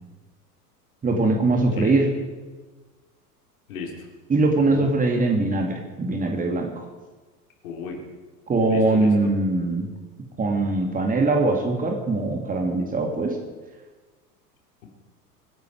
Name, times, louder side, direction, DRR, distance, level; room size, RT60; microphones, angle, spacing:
voice 1, 1.0-2.1 4.3-6.9 8.5-9.9 10.4-13.4, right 2 dB, 15° right, 2 dB, 2.5 m, -22 dB
voice 2, 3.7-4.1 4.6-5.0 7.6-8.0 8.7-9.3, left 5 dB, 60° left, 1 dB, 3.7 m, -35 dB
24.5 x 10.5 x 4.8 m, 1.3 s
figure-of-eight pair, 85°, 48 cm